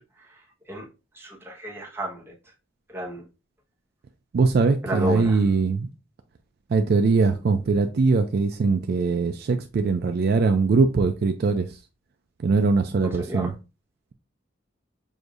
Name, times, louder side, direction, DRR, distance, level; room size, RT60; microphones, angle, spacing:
voice 1, 1.2-2.3 2.9-3.2 4.8-5.4 13.3-13.5, equal, 10° right, 1.0 m, -31 dB
voice 2, 4.3-5.9 6.7-11.8 12.4-13.5, right 4 dB, 55° right, 0.4 m, -21 dB
6.3 x 2.6 x 2.5 m
head